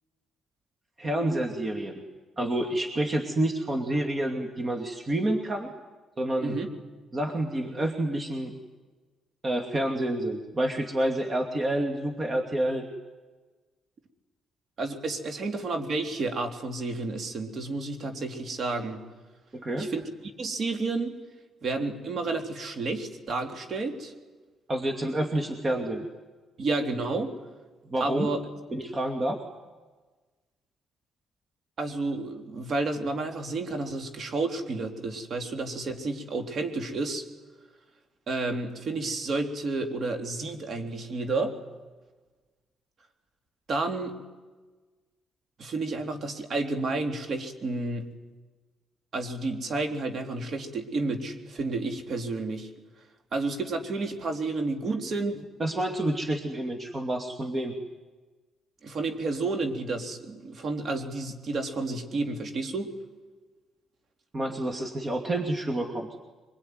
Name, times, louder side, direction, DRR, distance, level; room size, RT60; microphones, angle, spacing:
voice 1, 1.0-2.0 2.4-5.7 6.2-6.6 7.1-8.5 9.4-12.9 19.5-19.9 24.7-26.1 27.9-28.3 28.7-29.4 55.6-57.8 64.3-66.1, right 1 dB, 35° right, 4 dB, 2.6 m, -28 dB
voice 2, 14.8-19.0 19.8-20.0 20.4-21.1 21.6-24.1 26.6-27.3 28.0-28.4 31.8-37.2 38.3-41.5 43.7-44.1 45.6-48.1 49.1-52.7 53.3-55.4 58.8-62.9, right 3 dB, 55° right, 5 dB, 3.5 m, -31 dB
24.0 x 22.5 x 9.6 m, 1.3 s
cardioid pair, 90°, 0 cm